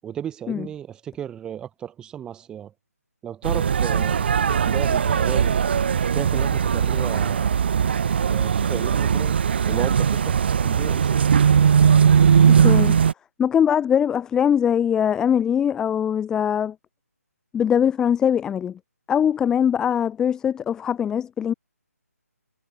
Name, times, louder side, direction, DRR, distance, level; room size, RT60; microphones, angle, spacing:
voice 1, 0.0-2.7 3.2-5.7 6.1-7.6 8.3-9.4 9.6-10.4 10.6-11.2, right 9 dB, 10° right, 7.4 m, -34 dB
sound 1, 3.4-13.1, right 7 dB, 40° right, 2.4 m, -19 dB
voice 2, 12.5-13.0 13.4-16.7 17.5-18.8 19.1-21.5, left 8 dB, 5° left, 1.1 m, -21 dB
figure-of-eight pair, 145°, 9 cm